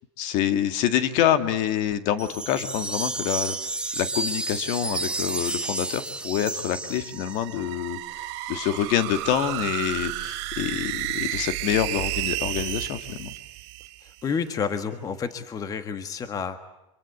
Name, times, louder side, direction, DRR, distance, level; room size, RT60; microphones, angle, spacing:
voice 1, 0.2-3.6 3.9-13.3, left 10 dB, 50° left, 10 dB, 1.9 m, -26 dB
sound 1, 2.2-7.6, right 2 dB, 5° right, 1.4 m, -31 dB
sound 2, 6.9-14.4, right 17 dB, 60° right, 2.9 m, -32 dB
voice 2, 14.0-16.6, left 6 dB, 20° left, 10 dB, 1.6 m, -30 dB
25.5 x 23.0 x 8.4 m, 0.92 s
supercardioid pair, 140°, 16 cm